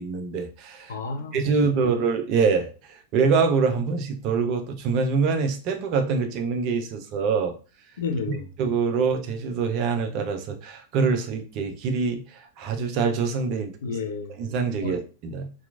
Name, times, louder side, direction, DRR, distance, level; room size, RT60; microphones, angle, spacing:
voice 1, 0.0-0.9 1.3-7.5 8.6-13.7 14.4-15.5, right 5 dB, 40° right, 0.5 m, -25 dB
voice 2, 0.9-1.4 1.8-2.0 8.0-8.5 13.8-14.3 14.8-15.0, left 4 dB, 60° left, 0.4 m, -31 dB
2.9 x 2.3 x 2.3 m
figure-of-eight pair, 90°, 0 cm